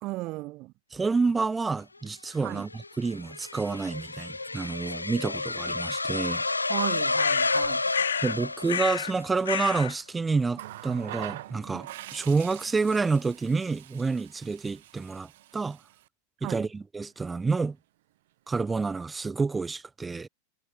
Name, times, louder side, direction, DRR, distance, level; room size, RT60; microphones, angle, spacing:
voice 1, 0.0-0.7 2.4-2.7 6.7-7.8 16.4-16.7, right 20 dB, 40° right, 0.8 m, -35 dB
voice 2, 0.9-2.7 3.0-6.4 8.2-15.8 16.4-17.8 18.5-20.3, right 4 dB, 10° right, 1.4 m, -28 dB
sound 1, 2.3-9.4, left 3 dB, 80° left, 1.6 m, -30 dB
sound 2, 7.2-8.4 8.7-9.1 9.4-10.0, left 9 dB, 65° left, 0.8 m, -30 dB
Water tap faucet, 10.5-16.1 17.3-17.5, right 16 dB, 55° right, 7.4 m, -44 dB
figure-of-eight pair, 90°, 0 cm